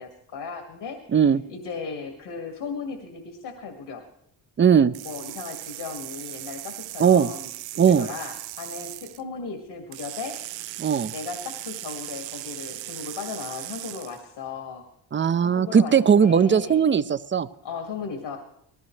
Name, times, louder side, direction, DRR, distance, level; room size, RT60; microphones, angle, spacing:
voice 1, 0.0-1.2 1.5-4.0 5.0-7.5 7.9-10.4 11.1-14.9 15.4-16.8 17.6-18.4, left 5 dB, 65° left, 4 dB, 2.2 m, -36 dB
voice 2, 4.6-4.9 7.0-7.3 7.8-8.1 10.8-11.1 15.1-17.5, right 7 dB, 25° right, 14 dB, 0.5 m, -19 dB
sound 1, 4.9-9.2 9.9-14.2, right 17 dB, 80° right, 0.6 m, -38 dB
19.0 x 15.5 x 3.2 m, 0.76 s
supercardioid pair, 70°, 44 cm